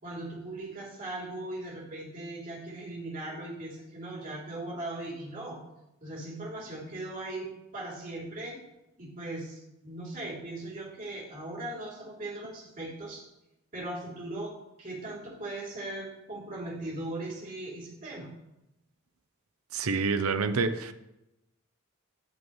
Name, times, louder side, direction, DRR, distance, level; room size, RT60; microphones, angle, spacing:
voice 1, 0.0-5.6 6.0-8.6 9.0-13.2 13.7-18.3, right 2 dB, 40° right, -5 dB, 3.2 m, -39 dB
voice 2, 19.7-20.9, right 4 dB, 85° right, 11 dB, 0.7 m, -27 dB
15.0 x 5.4 x 3.2 m, 0.91 s
head